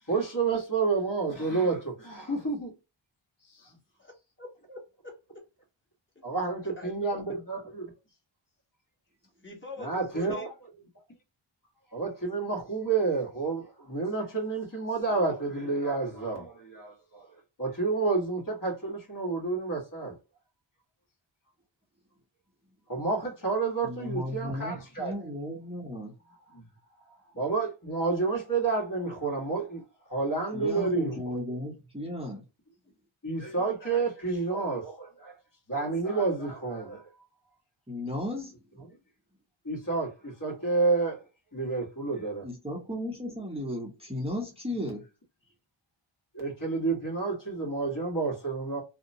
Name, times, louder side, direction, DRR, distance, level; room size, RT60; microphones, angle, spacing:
voice 1, 0.1-2.8 3.5-3.8 6.2-7.9 9.8-10.5 11.9-17.3 17.6-20.1 22.9-25.3 26.5-26.6 27.1-31.4 33.2-35.4 35.7-37.1 38.8-39.0 39.6-42.5 44.8-44.9 46.3-48.8, right 4 dB, 40° left, 1.5 m, -30 dB
voice 2, 4.4-5.2 6.8-7.4 9.4-10.5, left 1 dB, 25° left, 1.3 m, -43 dB
voice 3, 23.8-26.1 27.2-27.3 30.5-32.4 37.9-38.6 42.4-45.0, left 1 dB, 10° right, 0.8 m, -35 dB
2.8 x 2.1 x 2.6 m
wide cardioid pair, 75°, 47 cm